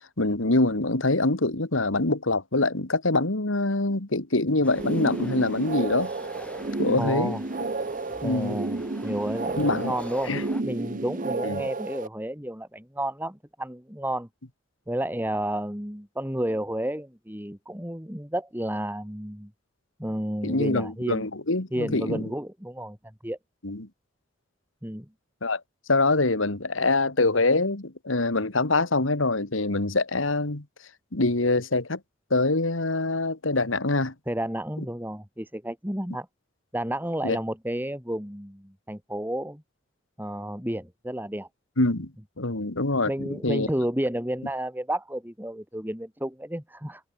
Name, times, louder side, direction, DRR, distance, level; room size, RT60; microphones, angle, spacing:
voice 1, 0.2-6.1 6.8-7.4 8.2-8.6 9.6-9.9 10.3-10.4 11.4-11.6 20.4-22.3 23.6-23.9 25.4-25.6 25.9-30.6 31.1-32.0 32.3-34.1 37.2-37.4 41.8-42.1 42.4-43.7, left 2 dB, 85° left, 2.3 m, -24 dB
sound 1, 4.6-10.6, left 1 dB, 5° left, 3.3 m, -45 dB
sound 2, 4.7-12.1, right 3 dB, 45° right, 0.9 m, -31 dB
voice 2, 7.0-7.4 8.2-10.3 10.6-14.3 14.9-19.5 20.0-21.3 21.7-23.0 23.2-23.4 24.8-25.1 34.3-36.3 36.7-39.6 40.2-41.5 43.1-47.0, right 1 dB, 10° right, 5.4 m, -31 dB
head